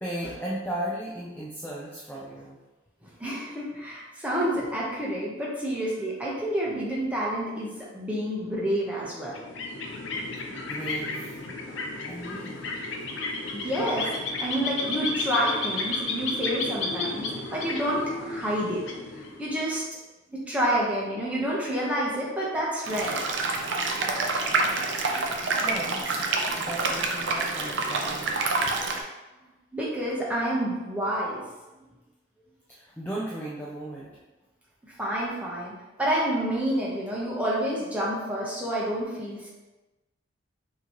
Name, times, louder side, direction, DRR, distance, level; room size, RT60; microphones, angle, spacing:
voice 1, 0.0-2.6 8.4-8.6 10.5-11.4 12.1-12.6 25.5-28.4 32.7-34.2, right 1 dB, 10° left, -6 dB, 0.5 m, -36 dB
voice 2, 3.2-9.4 13.1-13.2 13.5-14.1 14.4-18.8 19.1-19.8 20.5-23.2 29.7-31.4 34.9-35.7 36.0-39.5, equal, 5° right, -6 dB, 1.0 m, -29 dB
sound 1, 9.3-19.7, left 2 dB, 75° left, 0.6 m, -33 dB
sound 2, 22.9-29.0, right 3 dB, 70° right, 0.6 m, -27 dB
5.9 x 3.0 x 3.0 m, 1.1 s
head